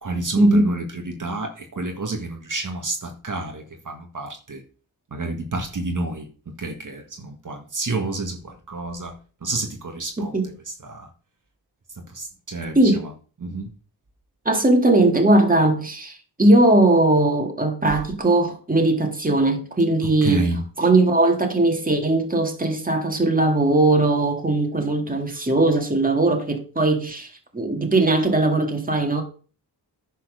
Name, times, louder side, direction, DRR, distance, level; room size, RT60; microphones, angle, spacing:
voice 1, 0.0-4.6 5.1-9.2 9.4-10.3 10.8-11.1 12.1-13.1 13.4-13.7 17.9-18.0 20.2-20.6, right 2 dB, 50° right, 1.8 m, -29 dB
voice 2, 14.5-20.5 20.8-29.2, right 2 dB, 20° right, 2.2 m, -19 dB
10.5 x 4.6 x 6.4 m
cardioid pair, 70°, 40 cm